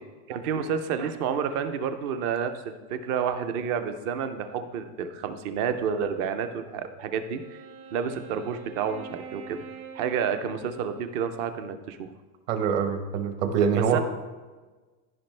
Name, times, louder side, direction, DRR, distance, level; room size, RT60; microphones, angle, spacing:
voice 1, 0.3-7.6 7.9-9.6 10.0-12.1 13.9-14.0, right 7 dB, 30° right, 9 dB, 0.4 m, -30 dB
Wind instrument woodwind instrument, 7.3-11.8, right 5 dB, 65° right, 1.6 m, -46 dB
voice 2, 12.5-14.0, right 7 dB, 50° right, 7 dB, 1.1 m, -24 dB
14.5 x 5.1 x 3.2 m, 1.3 s
supercardioid pair, 150°, 47 cm